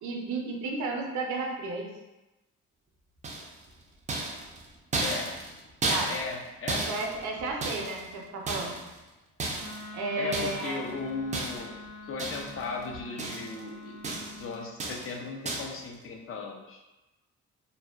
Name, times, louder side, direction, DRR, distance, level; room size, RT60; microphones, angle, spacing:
voice 1, 0.0-1.9 5.9-6.1 6.9-8.8 9.9-10.8, right 3 dB, 75° right, 0 dB, 0.6 m, -33 dB
sound 1, 3.2-3.7 4.1-6.4 6.7-8.1 8.5-9.0 9.4-9.9 10.3-10.7 11.3-11.8 12.2-12.7 12.9-13.6 14.0-14.4 14.8-15.2 15.4-15.8, right 2 dB, 25° right, 0.4 m, -33 dB
voice 2, 5.0-5.3 6.1-6.9 10.1-14.0 14.4-16.8, left 4 dB, 45° left, 1 dB, 0.4 m, -37 dB
Wind instrument woodwind instrument, 9.6-14.7, left 1 dB, 80° left, 1.0 m, -45 dB
2.6 x 2.1 x 2.2 m, 1.0 s
cardioid pair, 90°, 30 cm